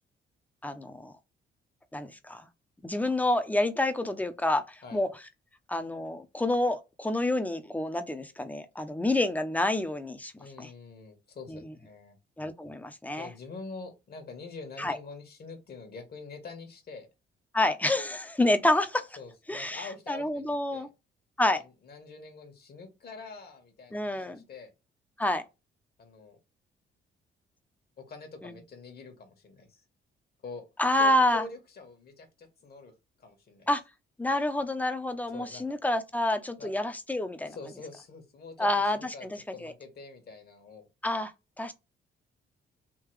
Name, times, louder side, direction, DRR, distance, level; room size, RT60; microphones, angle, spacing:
voice 1, 0.6-1.1 1.9-2.4 2.8-5.1 5.7-10.3 10.6-10.7 11.5-11.6 12.4-13.3 14.8-15.0 17.5-19.1 19.5-20.9 21.4-21.6 23.9-24.4 25.2-25.4 28.4-28.6 30.8-31.4 33.7-33.8 34.2-37.6 38.6-39.7 41.0-41.3 41.6-41.7, left 1 dB, 10° left, 0.6 m, -28 dB
voice 2, 10.4-12.2 13.2-17.1 19.2-20.9 21.5-24.7 26.0-26.4 28.0-29.8 30.4-30.6 30.9-32.9 33.2-33.7 35.3-35.7 36.6-36.7 37.4-40.9, left 4 dB, 50° left, 1.3 m, -45 dB
3.7 x 2.8 x 3.2 m
cardioid pair, 90°, 20 cm